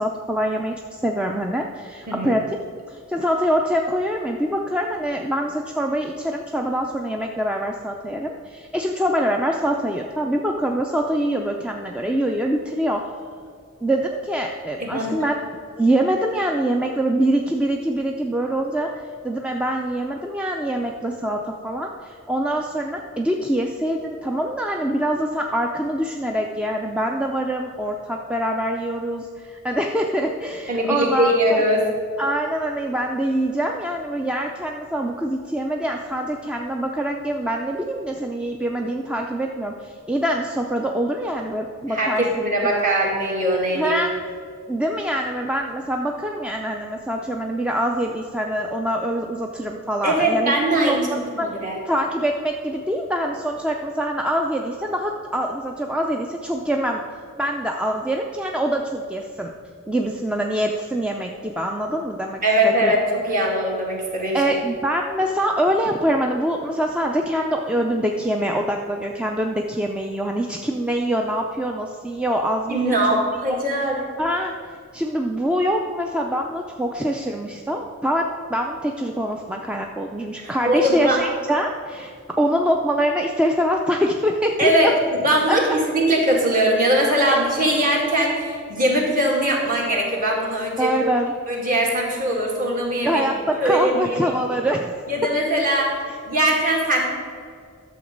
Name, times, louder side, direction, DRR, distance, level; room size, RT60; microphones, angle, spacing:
voice 1, 0.0-2.6 2.9-13.1 13.8-15.4 15.7-31.6 32.2-42.5 43.7-44.1 44.7-50.6 50.9-51.0 51.4-51.5 51.9-57.0 57.4-59.5 59.9-62.9 64.3-73.0 74.2-74.5 74.9-84.9 85.5-85.6 87.3-87.4 90.8-91.3 93.0-95.0, right 1 dB, 5° right, 1 dB, 0.4 m, -24 dB
voice 2, 14.8-15.1 30.7-31.8 41.9-43.9 50.0-51.1 51.4-51.8 62.4-64.5 72.7-74.0 80.4-81.2 84.6-84.9 85.2-91.0 91.5-93.2 93.6-94.2 95.1-96.0 96.2-97.1, right 1 dB, 40° right, -2 dB, 2.2 m, -21 dB
11.5 x 7.1 x 5.2 m, 2.2 s
head